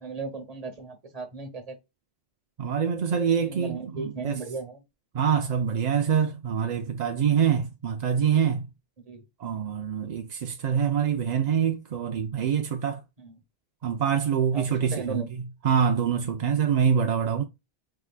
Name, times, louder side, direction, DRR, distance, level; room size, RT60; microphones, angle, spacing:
voice 1, 0.0-1.8 3.4-4.8 9.0-9.3 13.2-13.3 14.5-15.3, right 4 dB, 40° right, 1.2 m, -36 dB
voice 2, 2.6-4.3 5.1-8.7 9.4-13.0 13.8-15.2 15.6-17.4, right 7 dB, 55° right, 0.5 m, -25 dB
4.7 x 3.6 x 2.3 m
omnidirectional pair, 1.1 m